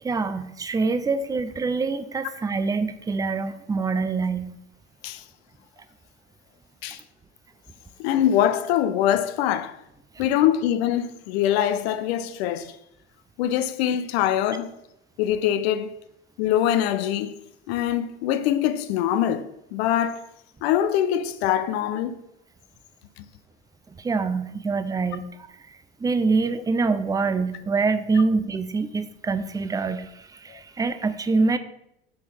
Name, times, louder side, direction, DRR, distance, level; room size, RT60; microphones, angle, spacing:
voice 1, 0.0-4.6 24.0-25.3 26.0-31.6, right 4 dB, 10° right, 0.4 m, -25 dB
voice 2, 8.0-9.8 10.2-12.7 13.4-14.7 15.2-15.9 16.4-17.3 17.7-20.2 20.6-22.2 23.2-23.3 30.5-30.6, left 11 dB, 65° left, 0.6 m, -23 dB
6.2 x 4.7 x 3.5 m
hypercardioid pair, 70°, 33 cm